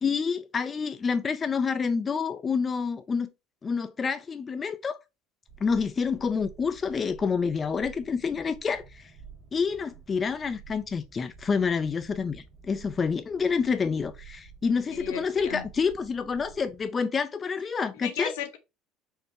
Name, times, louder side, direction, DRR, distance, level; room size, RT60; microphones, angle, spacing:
voice 1, 0.0-3.3 3.6-5.0 5.6-9.1 9.5-18.3, left 5 dB, 30° left, 0.5 m, -28 dB
sound 1, 5.5-16.9, right 7 dB, 35° right, 2.1 m, -51 dB
voice 2, 14.9-15.6 17.9-18.6, left 8 dB, 85° left, 1.0 m, -36 dB
4.5 x 3.2 x 3.2 m
supercardioid pair, 90°, 0 cm